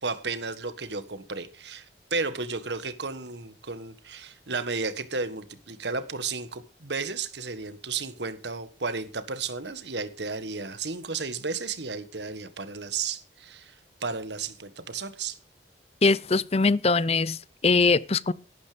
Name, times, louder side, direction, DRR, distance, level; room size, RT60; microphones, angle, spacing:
voice 1, 0.0-13.7 14.0-15.4, right 4 dB, 75° right, 1.6 m, -33 dB
voice 2, 16.0-18.3, left 4 dB, 35° left, 0.6 m, -22 dB
13.0 x 12.0 x 5.2 m
head